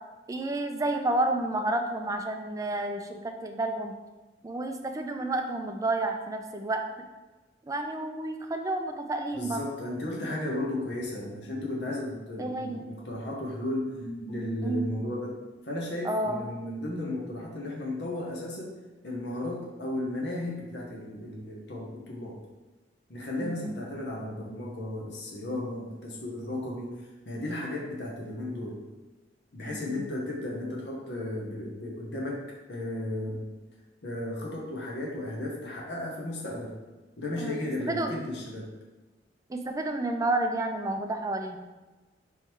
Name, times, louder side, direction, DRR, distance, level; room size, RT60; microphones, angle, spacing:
voice 1, 0.3-3.9 4.4-6.8 7.6-9.6 12.4-12.9 14.6-14.9 16.0-16.4 23.4-23.8 29.7-30.1 37.4-38.2 39.5-41.7, right 2 dB, 20° right, 4 dB, 0.3 m, -30 dB
voice 2, 9.3-15.4 15.6-18.7 19.0-22.4 23.1-28.8 29.5-32.4 32.7-33.5 34.0-36.7 37.2-38.7, left 1 dB, 70° left, -3 dB, 0.9 m, -34 dB
3.6 x 3.1 x 4.4 m, 1.2 s
head